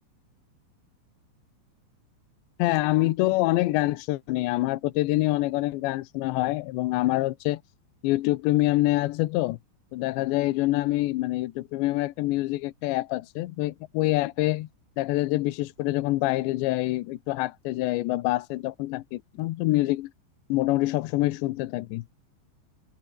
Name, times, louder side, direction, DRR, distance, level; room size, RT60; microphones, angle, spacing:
voice 1, 2.6-7.6 8.0-9.6 9.9-14.7 15.0-20.1 20.5-22.0, left 18 dB, 80° left, 3.1 m, -26 dB
omnidirectional pair, 5.4 m